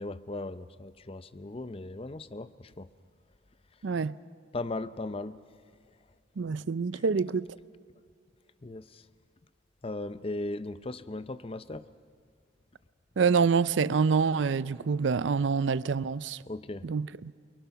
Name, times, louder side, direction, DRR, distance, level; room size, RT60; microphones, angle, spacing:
voice 1, 0.0-2.9 4.5-5.4 8.6-9.0 9.8-11.8 16.5-16.9, left 2 dB, 30° left, 0.6 m, -37 dB
voice 2, 3.8-4.1 6.4-7.5 13.2-16.4 16.8-17.3, right 5 dB, 70° right, 0.5 m, -26 dB
29.0 x 22.5 x 5.7 m
head